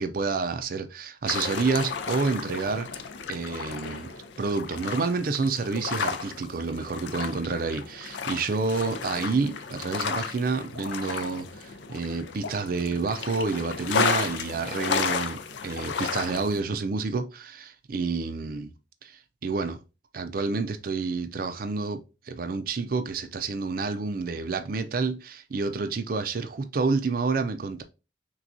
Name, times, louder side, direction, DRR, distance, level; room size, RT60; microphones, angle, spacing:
voice 1, 0.0-4.1 4.4-18.7 19.4-19.8 20.1-27.8, right 4 dB, 50° right, 0.5 m, -29 dB
sound 1, 1.3-16.6, left 5 dB, 80° left, 0.5 m, -33 dB
5.9 x 2.3 x 2.6 m
head